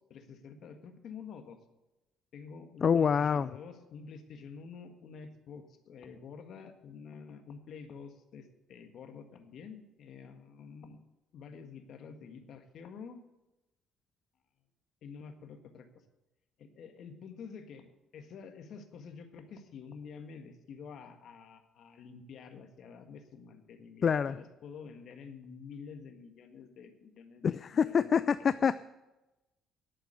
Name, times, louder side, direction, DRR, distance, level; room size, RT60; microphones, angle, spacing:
voice 1, 0.1-1.6 2.3-11.0 11.3-13.2 15.0-15.9 16.6-27.4 27.8-28.1 28.6-28.7, left 6 dB, 60° left, 7 dB, 1.6 m, -48 dB
voice 2, 2.8-3.5 24.0-24.4 27.4-28.7, left 7 dB, 40° left, 15 dB, 0.3 m, -26 dB
10.5 x 8.9 x 8.0 m, 1.0 s
cardioid pair, 125°, 0 cm